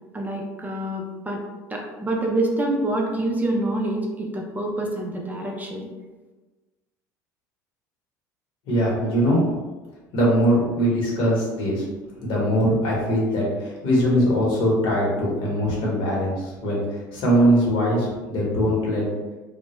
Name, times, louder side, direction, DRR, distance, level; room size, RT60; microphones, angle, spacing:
voice 1, 0.1-1.4 1.7-5.9, right 1 dB, 15° right, 0 dB, 0.4 m, -26 dB
voice 2, 8.7-9.4 10.1-11.9 12.2-19.1, equal, 60° left, -4 dB, 1.0 m, -21 dB
2.1 x 2.1 x 2.9 m, 1.2 s
hypercardioid pair, 75°, 9 cm